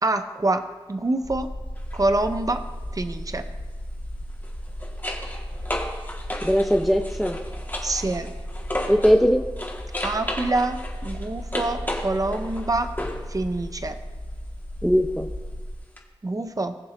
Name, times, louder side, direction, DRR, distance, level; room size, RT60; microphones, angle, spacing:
voice 1, 0.0-1.5 1.9-2.6 2.9-3.4 7.8-8.3 10.0-12.9 13.3-14.0 16.2-16.8, right 2 dB, 40° right, 8 dB, 0.6 m, -26 dB
sound 1, 1.2-15.8, equal, 60° left, 1.2 m, -35 dB
sound 2, 1.8-2.0 4.3-9.2 9.6-13.3 16.0-16.1, left 1 dB, 20° left, 1.6 m, -33 dB
voice 2, 6.4-7.4 8.9-9.4 14.8-15.3, equal, ahead, 3 dB, 0.6 m, -20 dB
19.5 x 6.9 x 2.6 m, 1.4 s
wide cardioid pair, 50°, 9 cm